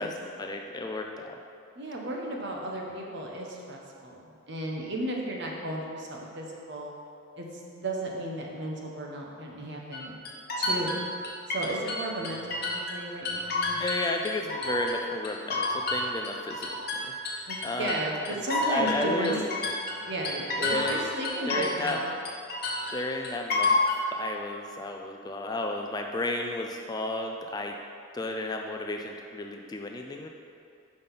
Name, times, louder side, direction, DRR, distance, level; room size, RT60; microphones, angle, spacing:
voice 1, 0.0-1.4 13.8-16.7 16.9-17.9 18.7-19.5 20.6-21.0 21.5-22.0 22.9-23.8 24.1-27.8 28.1-30.3, left 2 dB, 20° left, 3 dB, 0.3 m, -33 dB
voice 2, 1.7-6.9 7.4-7.5 7.7-10.1 10.6-11.1 11.5-13.8 17.5-19.3 20.1-22.2, right 1 dB, 55° right, -1 dB, 1.0 m, -34 dB
sound 1, 9.9-13.0 13.3-15.0 15.2-22.0 22.3-24.0, left 2 dB, 45° left, 1.0 m, -30 dB
5.7 x 5.2 x 5.6 m, 2.5 s
head